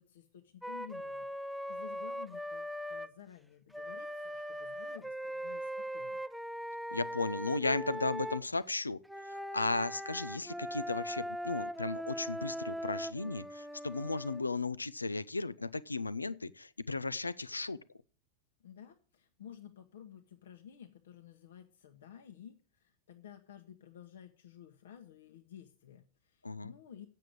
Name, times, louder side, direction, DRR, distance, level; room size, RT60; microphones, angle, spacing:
voice 1, 0.0-6.2 18.6-27.1, left 9 dB, 60° left, 1.1 m, -53 dB
Wind instrument woodwind instrument, 0.6-3.1 3.7-8.4 9.0-14.4, equal, ahead, 0.6 m, -40 dB
voice 2, 6.9-9.0 9.3-17.8 26.4-26.7, left 3 dB, 80° left, 0.5 m, -35 dB
9.0 x 7.5 x 8.1 m
figure-of-eight pair, 90°, 0 cm